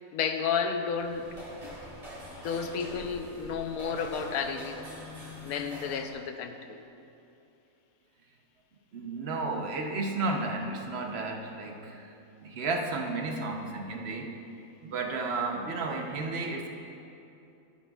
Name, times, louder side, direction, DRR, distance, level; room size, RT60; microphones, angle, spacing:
voice 1, 0.1-1.2 1.6-1.8 2.4-4.8 5.4-6.8, left 6 dB, 85° left, 7 dB, 1.1 m, -32 dB
sound 1, 0.8-6.1, equal, 25° right, 2.3 m, -44 dB
voice 2, 8.9-12.1 12.4-14.3 14.8-16.7, right 3 dB, 50° right, 2 dB, 1.0 m, -32 dB
14.0 x 8.9 x 2.4 m, 2.8 s
omnidirectional pair, 1.5 m